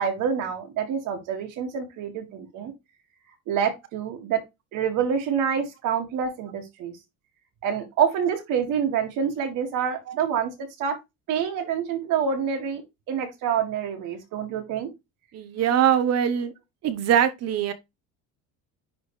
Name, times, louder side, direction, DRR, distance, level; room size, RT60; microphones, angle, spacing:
voice 1, 0.0-2.7 3.5-4.4 4.7-6.9 7.6-10.5 10.8-11.0 11.3-12.8 13.1-14.9, right 7 dB, 70° right, 2.0 m, -27 dB
voice 2, 15.3-16.5 16.8-17.7, right 9 dB, 50° right, 1.0 m, -22 dB
10.5 x 3.7 x 3.2 m
cardioid pair, 135°, 33 cm